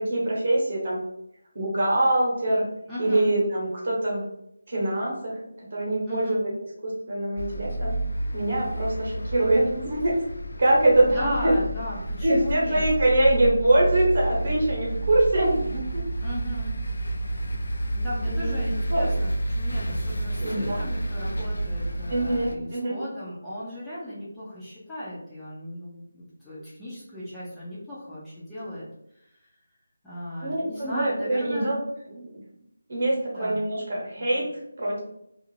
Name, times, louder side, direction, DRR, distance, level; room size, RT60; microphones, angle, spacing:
voice 1, 0.1-1.0 1.5-2.6 3.0-4.2 4.7-5.4 5.7-6.5 6.8-7.9 8.3-10.2 10.6-11.5 12.2-16.0 18.3-18.6 18.9-19.2 20.4-20.8 22.1-23.0 30.4-31.8 32.1-32.4 32.9-34.4 34.8-35.0, right 1 dB, 45° right, -3 dB, 0.9 m, -24 dB
voice 2, 2.9-3.4 6.1-6.5 11.1-12.8 16.2-16.8 17.9-28.8 29.1-29.5 30.0-31.7 33.3-33.6, equal, 5° left, -11 dB, 0.4 m, -36 dB
sound 1, 7.4-22.6, right 1 dB, 80° left, 0.4 m, -30 dB
2.4 x 2.0 x 3.0 m, 0.78 s
figure-of-eight pair, 170°, 0 cm